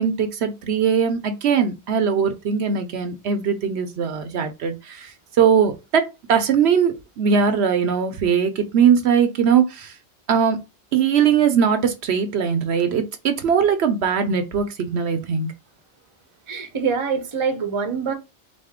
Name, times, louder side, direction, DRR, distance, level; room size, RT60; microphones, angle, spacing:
voice 1, 0.0-6.0 6.3-10.0 10.3-10.6 10.9-15.5, right 7 dB, 70° right, 0.9 m, -20 dB
voice 2, 16.5-18.1, right 5 dB, 30° right, 0.7 m, -24 dB
4.2 x 2.6 x 3.5 m
omnidirectional pair, 1.2 m